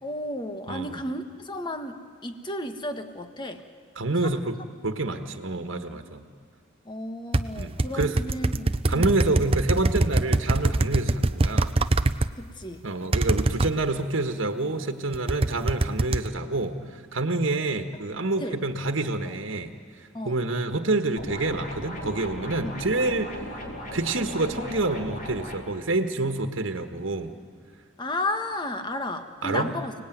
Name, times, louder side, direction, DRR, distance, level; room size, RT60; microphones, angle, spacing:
voice 1, 0.0-3.6 4.2-4.4 6.8-9.2 12.4-12.9 18.4-18.6 19.2-19.4 20.1-20.4 22.6-22.8 28.0-29.9, left 1 dB, 20° left, 7 dB, 1.5 m, -33 dB
voice 2, 0.7-1.0 4.0-4.5 4.8-6.2 7.6-8.2 8.9-11.7 12.8-19.7 20.2-23.4 23.9-27.3 29.4-29.7, right 2 dB, 75° right, 7 dB, 1.5 m, -27 dB
sound 1, 7.3-12.3 13.1-13.7 15.1-16.3, right 2 dB, 30° right, 0.6 m, -23 dB
sound 2, 21.2-25.6, left 1 dB, 40° left, 4.6 m, -37 dB
30.0 x 19.0 x 9.3 m, 2.1 s
head